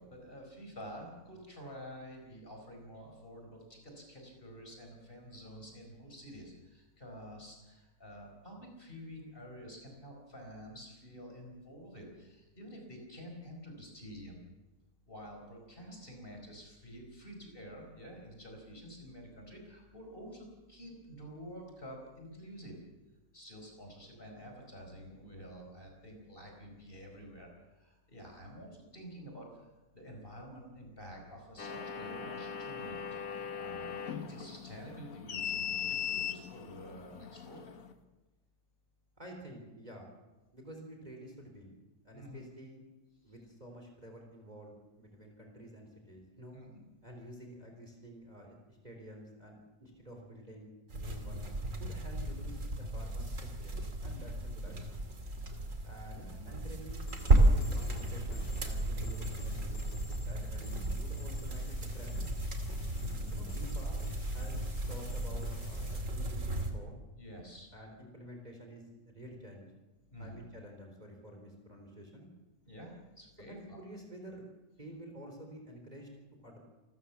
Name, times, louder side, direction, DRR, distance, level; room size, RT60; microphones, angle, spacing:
voice 1, 0.0-14.4 15.1-22.8 23.3-33.0 33.6-37.6 42.1-42.4 46.5-46.7 62.9-63.5 67.2-67.7 70.1-70.4 72.6-73.8, equal, 30° left, 2 dB, 5.0 m, -49 dB
sound 1, 31.6-37.9, left 8 dB, 55° left, 1.6 m, -39 dB
voice 2, 39.2-40.1 40.5-41.7 42.0-42.8 43.2-46.6 47.0-51.5 51.8-55.0 55.8-57.1 57.4-59.8 60.2-62.2 63.3-67.0 67.7-68.8 69.1-69.7 70.2-72.3 73.5-74.4 74.8-76.1 76.4-76.6, equal, 25° right, 2 dB, 3.9 m, -50 dB
sound 2, 50.9-66.7, right 1 dB, 45° right, 2.8 m, -33 dB
sound 3, 57.1-66.0, left 2 dB, 75° left, 4.2 m, -53 dB
28.0 x 14.0 x 7.2 m, 1.1 s
omnidirectional pair, 1.8 m